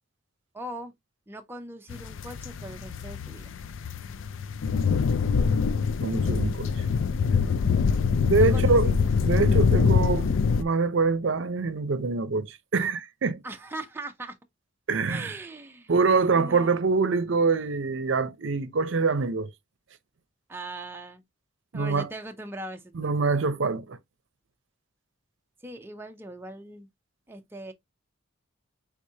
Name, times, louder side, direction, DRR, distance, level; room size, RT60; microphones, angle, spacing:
voice 1, 0.5-0.9 1.3-3.5 8.3-9.0 13.4-14.4 15.1-15.9 16.4-16.8 20.5-21.2 21.7-23.1 25.6-26.9 27.3-27.7, right 1 dB, 10° right, 0.5 m, -40 dB
sound 1, 1.9-10.6, left 5 dB, 75° left, 0.4 m, -24 dB
voice 2, 6.0-6.7 8.3-8.9 9.2-13.4 14.9-15.3 15.9-19.5 21.7-22.1 22.9-24.0, right 4 dB, 70° right, 0.6 m, -25 dB
4.8 x 3.5 x 2.7 m
head